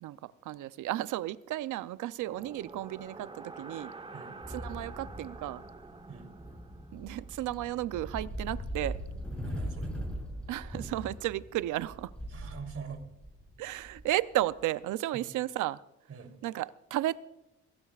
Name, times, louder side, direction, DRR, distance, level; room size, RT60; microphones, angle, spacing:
voice 1, 0.0-3.9 4.5-5.6 6.9-9.0 10.5-12.1 13.6-15.8 16.4-17.2, right 14 dB, 85° right, 0.7 m, -33 dB
sound 1, 2.2-10.2, right 3 dB, 15° right, 1.1 m, -49 dB
sound 2, 4.4-14.6, equal, 5° left, 7.2 m, -41 dB
voice 2, 9.4-9.9 12.3-13.1 15.1-15.3 16.1-16.3, right 5 dB, 50° right, 3.5 m, -44 dB
22.0 x 17.0 x 2.5 m
cardioid pair, 90°, 30 cm